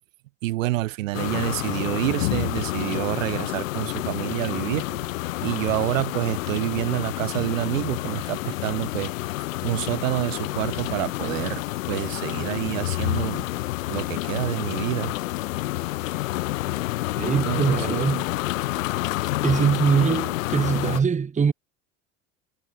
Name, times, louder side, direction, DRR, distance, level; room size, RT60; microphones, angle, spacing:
voice 1, 0.4-4.9 5.4-9.1 9.6-11.6 11.9-13.5 13.9-15.1 17.3-18.1, right 17 dB, 80° right, 1.4 m, -28 dB
sound 1, 1.1-21.0, left 18 dB, 80° left, 1.2 m, -29 dB
sound 2, 2.1-3.0 4.2-6.1 7.9-8.7 9.0-9.1 10.5-11.6, right 8 dB, 35° right, 5.3 m, -53 dB
voice 2, 17.2-18.3 19.4-21.5, right 6 dB, 20° right, 1.0 m, -22 dB
hypercardioid pair, 75°, 39 cm